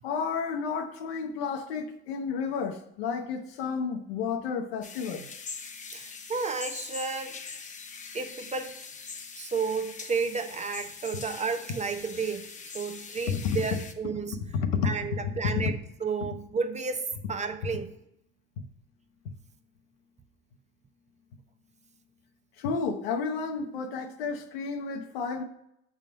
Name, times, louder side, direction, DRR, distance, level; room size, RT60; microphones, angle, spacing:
voice 1, 0.0-5.3 13.3-13.6 14.6-14.9 15.5-15.7 22.6-25.4, left 5 dB, 85° left, 0.9 m, -31 dB
sound 1, 4.8-13.9, left 5 dB, 25° left, 0.7 m, -42 dB
voice 2, 5.9-7.4 8.1-8.7 9.4-12.5 12.7-14.4 14.8-17.0 17.3-17.9, right 5 dB, 25° right, 0.6 m, -32 dB
6.5 x 3.6 x 5.2 m
supercardioid pair, 85°, 30 cm